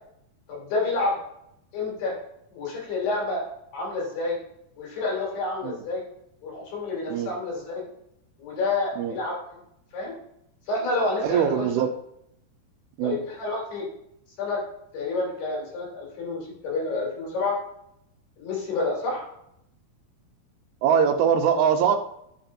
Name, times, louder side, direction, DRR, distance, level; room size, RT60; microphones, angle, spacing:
voice 1, 0.5-1.2 1.7-2.1 2.5-3.4 3.7-4.4 4.8-6.0 6.4-7.8 8.4-9.6 9.9-10.1 10.7-11.7 13.0-13.8 14.4-14.6 14.9-17.6 18.4-19.3, left 3 dB, 85° left, -4 dB, 5.1 m, -29 dB
voice 2, 11.2-11.9 13.0-13.2 20.8-22.0, right 8 dB, 80° right, 6 dB, 2.7 m, -22 dB
10.0 x 7.3 x 2.6 m, 0.76 s
omnidirectional pair, 4.6 m